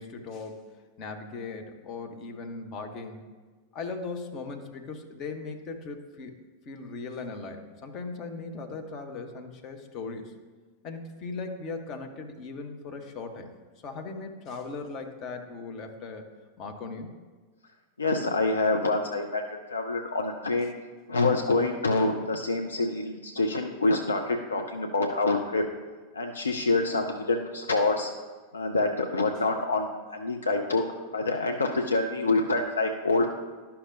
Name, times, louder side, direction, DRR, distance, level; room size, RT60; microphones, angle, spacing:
voice 1, 0.0-3.3 3.7-6.4 6.7-10.3 10.8-13.5 13.8-16.3 16.6-17.1, left 4 dB, 35° left, 5 dB, 0.9 m, -38 dB
voice 2, 18.0-19.4 19.7-20.7 21.1-25.6 26.1-28.1 28.5-30.8 31.1-33.3, left 3 dB, 75° left, 4 dB, 0.4 m, -26 dB
11.5 x 5.7 x 2.6 m, 1.4 s
figure-of-eight pair, 90°, 0 cm